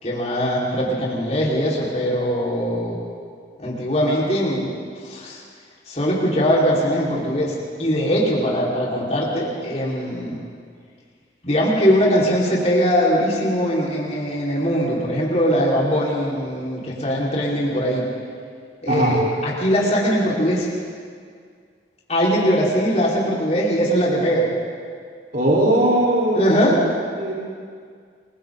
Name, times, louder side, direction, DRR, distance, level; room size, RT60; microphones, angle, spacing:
voice 1, 0.0-3.0 3.6-4.7 5.0-5.4 5.9-10.4 11.4-18.0 18.8-20.7 22.1-24.5 26.3-26.8, equal, 35° left, -6 dB, 5.0 m, -21 dB
voice 2, 25.3-26.8 27.2-27.3, right 1 dB, 50° right, -6 dB, 4.3 m, -19 dB
30.0 x 23.5 x 4.1 m, 2.1 s
head